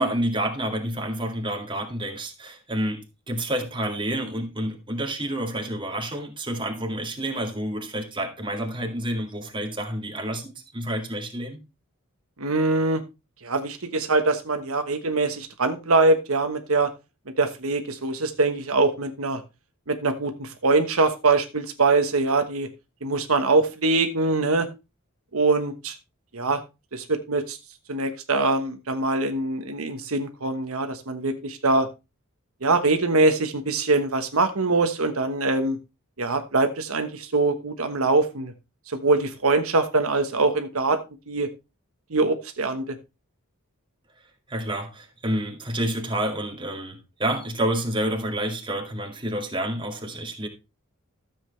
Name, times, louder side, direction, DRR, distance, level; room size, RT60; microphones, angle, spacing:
voice 1, 0.0-11.6 44.5-50.5, right 1 dB, 25° right, 2.2 m, -29 dB
voice 2, 12.4-13.0 13.4-16.9 17.4-19.4 19.9-22.7 23.0-24.7 25.3-26.0 26.3-26.6 26.9-27.6 27.9-31.9 32.6-35.8 36.2-38.5 38.9-41.0 41.3-41.5 42.1-43.0, right 3 dB, 70° right, 1.2 m, -23 dB
13.5 x 7.6 x 3.2 m
head